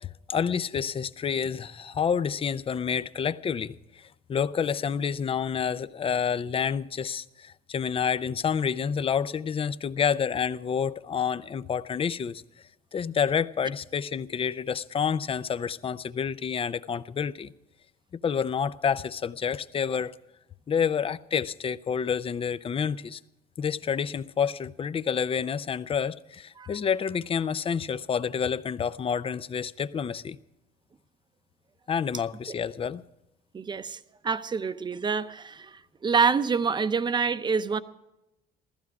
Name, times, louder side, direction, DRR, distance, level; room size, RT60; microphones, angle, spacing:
voice 1, 0.0-12.4 12.9-17.5 18.2-20.1 20.7-23.2 23.6-30.4 31.9-33.0, left 7 dB, 35° left, 0.6 m, -28 dB
voice 2, 33.5-34.0 34.2-37.8, right 5 dB, 25° right, 0.8 m, -27 dB
15.5 x 14.5 x 4.8 m
cardioid pair, 110°, 17 cm